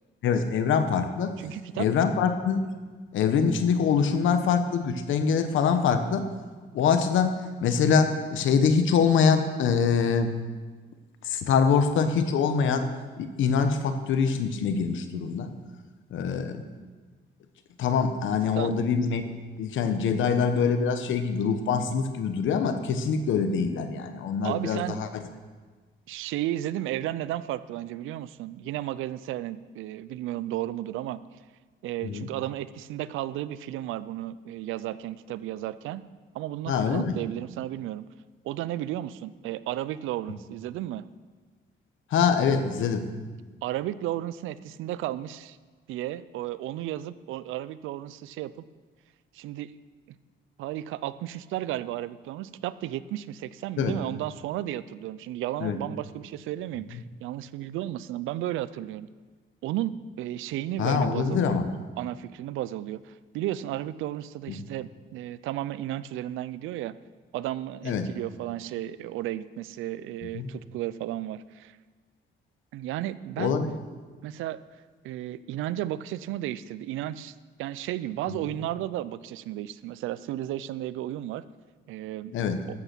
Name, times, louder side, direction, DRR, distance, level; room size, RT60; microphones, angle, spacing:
voice 1, 0.2-1.3 1.8-2.7 3.1-6.3 6.7-10.4 11.2-12.9 13.2-15.5 16.1-16.6 17.8-19.3 19.6-25.1 32.0-32.3 36.7-37.2 42.1-43.1 53.8-54.0 55.6-55.8 60.8-61.7 64.5-64.6 67.8-68.1 70.3-70.5 73.4-73.7 78.3-78.4 82.3-82.6, left 6 dB, 75° left, 9 dB, 1.1 m, -24 dB
voice 2, 1.4-1.9 18.6-18.7 24.4-25.0 26.1-31.2 31.8-36.0 36.3-38.0 38.4-41.0 43.6-45.6 45.9-48.7 49.3-49.7 50.6-59.1 59.6-61.6 62.0-66.9 67.3-71.8 72.7-73.6 74.2-74.6 75.0-81.4 81.9-82.3, right 13 dB, 90° right, 16 dB, 0.5 m, -33 dB
13.0 x 8.0 x 6.1 m, 1.4 s
cardioid pair, 90°, 20 cm